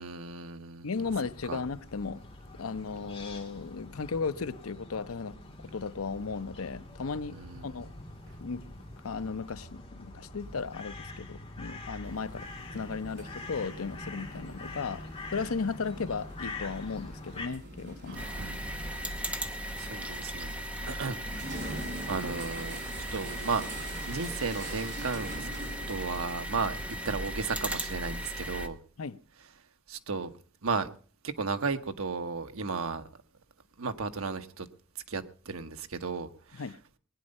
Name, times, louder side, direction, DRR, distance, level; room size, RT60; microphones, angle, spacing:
voice 1, 0.0-0.9 1.5-1.6 7.3-7.7 18.1-18.6 19.8-22.8 23.1-23.6 24.1-25.5 25.9-26.8 27.0-28.8 29.9-30.3 30.6-30.9 31.2-33.0 33.8-34.7 35.1-36.6, right 4 dB, 85° right, 1.2 m, -34 dB
voice 2, 0.8-2.2 2.6-7.4 7.6-7.9 8.4-8.6 9.0-15.0 15.3-18.3 20.8-21.0 29.0-29.2 36.6-36.8, left 4 dB, 85° left, 0.7 m, -35 dB
sound 1, 0.9-17.5, left 2 dB, 30° left, 3.0 m, -45 dB
sound 2, 12.0-27.0, right 1 dB, 55° right, 6.6 m, -45 dB
sound 3, 18.2-28.7, equal, 5° right, 0.9 m, -37 dB
20.0 x 9.9 x 5.4 m
head